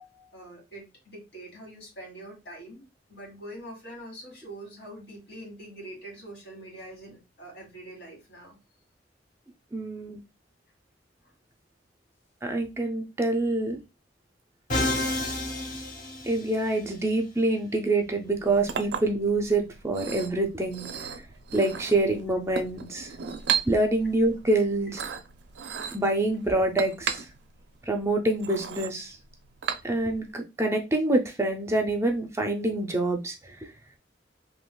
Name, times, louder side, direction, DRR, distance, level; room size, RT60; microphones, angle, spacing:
voice 1, 0.0-2.8 3.1-8.6 11.2-11.3, right 1 dB, 75° left, -1 dB, 2.1 m, -44 dB
voice 2, 9.7-10.2 12.4-13.8 16.2-21.1 21.5-23.1 23.7-25.0 25.9-27.3 27.9-29.2 29.8-33.7, right 2 dB, 15° right, 4 dB, 0.4 m, -26 dB
Musical instrument, 14.7-16.8, left 1 dB, 45° left, 0.9 m, -29 dB
Chink clink, 18.2-30.3, right 7 dB, 75° right, 0.4 m, -36 dB
3.7 x 2.7 x 2.3 m, 0.25 s
head